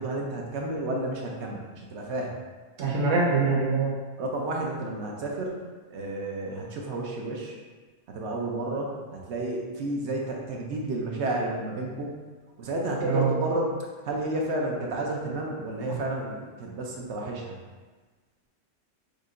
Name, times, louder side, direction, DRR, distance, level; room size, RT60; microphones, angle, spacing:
voice 1, 0.0-2.3 4.2-5.6 5.9-7.6 8.1-12.1 12.6-13.7 14.0-17.6, right 2 dB, 70° right, -1 dB, 0.9 m, -31 dB
voice 2, 2.8-3.9 13.0-13.3, right 4 dB, 85° right, -4 dB, 1.3 m, -24 dB
6.4 x 2.7 x 2.5 m, 1.4 s
omnidirectional pair, 1.3 m